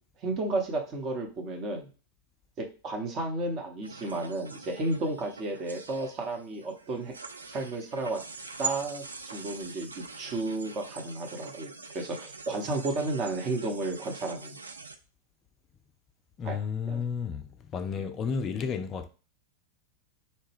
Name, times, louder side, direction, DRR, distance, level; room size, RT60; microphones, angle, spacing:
voice 1, 0.2-1.9 2.6-7.1 7.5-8.2 8.6-14.6 16.4-16.6 16.9-17.0, right 2 dB, 35° right, 0.9 m, -32 dB
sound 1, 3.8-15.0, right 5 dB, 75° right, 0.3 m, -43 dB
voice 2, 16.4-19.1, left 6 dB, 30° left, 0.3 m, -32 dB
4.2 x 2.2 x 3.4 m
figure-of-eight pair, 90°, 0 cm